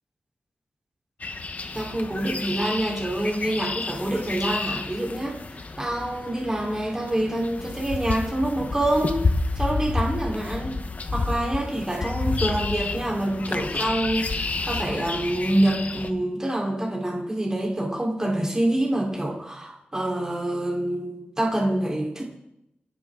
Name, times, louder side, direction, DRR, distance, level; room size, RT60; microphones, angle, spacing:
sound 1, 1.2-16.1, left 3 dB, 45° left, 1.2 m, -30 dB
voice 1, 1.7-9.2 9.6-10.7 11.1-22.2, right 1 dB, 15° right, -2 dB, 4.1 m, -26 dB
28.5 x 10.5 x 3.9 m, 0.81 s
wide cardioid pair, 125°, 3 cm